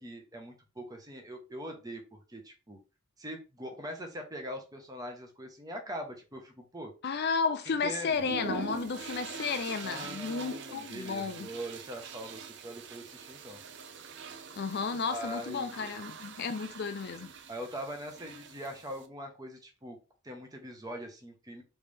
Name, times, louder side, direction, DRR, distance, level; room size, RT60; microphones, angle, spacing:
voice 1, 0.0-2.0 2.3-2.8 3.2-6.9 7.7-8.3 9.8-13.6 15.1-16.0 17.5-20.0 20.2-21.6, equal, 15° right, 0.9 m, -42 dB
voice 2, 7.0-11.5 14.5-17.3, left 5 dB, 50° left, 0.4 m, -33 dB
sound 1, 8.1-19.1, right 4 dB, 55° right, 0.6 m, -44 dB
3.9 x 3.4 x 3.5 m
head